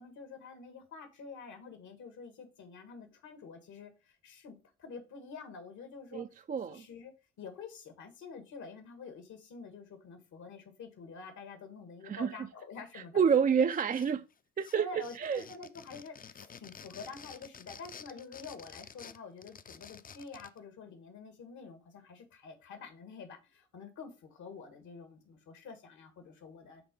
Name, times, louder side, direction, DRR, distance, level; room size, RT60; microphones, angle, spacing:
voice 1, 0.0-6.2 6.7-7.1 7.4-13.2 13.5-13.7 14.7-26.8, left 4 dB, 70° left, 1.7 m, -48 dB
voice 2, 6.1-6.9 12.0-12.5 12.9-14.2 14.6-14.9 15.2-15.4, right 7 dB, 30° right, 0.4 m, -29 dB
sound 1, 13.7-14.3 14.6-20.6, left 6 dB, 30° left, 0.5 m, -51 dB
6.0 x 3.7 x 5.1 m
cardioid pair, 90°, 30 cm